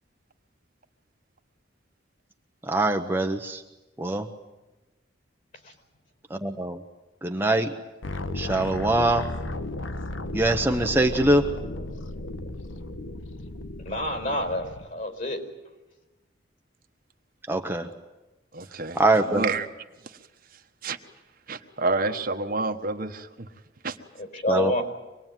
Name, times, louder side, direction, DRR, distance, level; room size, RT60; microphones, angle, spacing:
voice 1, 2.6-3.6 4.0-4.3 6.3-6.8 7.2-7.7 8.3-9.3 10.3-11.5 17.5-17.9 18.9-19.4 24.5-24.8, right 2 dB, 10° right, 4 dB, 1.0 m, -23 dB
sound 1, 8.0-14.9, left 1 dB, 85° left, 1.4 m, -35 dB
voice 2, 13.8-15.4 24.2-24.8, left 1 dB, 45° left, 6 dB, 5.0 m, -28 dB
voice 3, 18.5-19.0 19.3-19.7 20.0-20.2 20.8-21.0 21.5-23.3 23.8-24.0, right 3 dB, 50° right, 6 dB, 1.4 m, -28 dB
25.5 x 20.5 x 9.2 m, 1.1 s
head